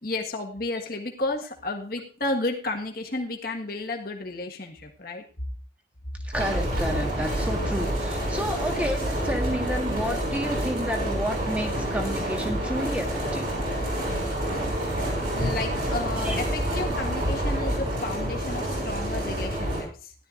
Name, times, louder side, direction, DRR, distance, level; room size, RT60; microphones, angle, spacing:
voice 1, 0.0-5.2 15.3-20.1, left 2 dB, 50° left, 2 dB, 1.5 m, -32 dB
voice 2, 6.2-13.5 16.2-16.4, equal, 5° right, 2 dB, 1.6 m, -30 dB
sound 1, 6.3-19.8, right 1 dB, 50° right, 6.0 m, -28 dB
16.0 x 12.0 x 2.6 m, 0.39 s
head